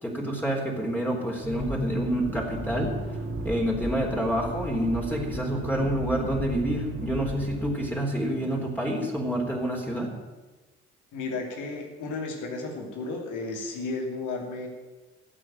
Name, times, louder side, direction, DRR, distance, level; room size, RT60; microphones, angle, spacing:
voice 1, 0.0-3.2 3.4-10.1, equal, 5° left, -2 dB, 3.7 m, -28 dB
Accelerating revving vroom, 1.4-7.7, right 2 dB, 50° right, 3.5 m, -34 dB
voice 2, 11.1-14.7, left 3 dB, 70° left, 2 dB, 2.7 m, -33 dB
14.0 x 7.6 x 9.1 m, 1.3 s
hypercardioid pair, 45°, 32 cm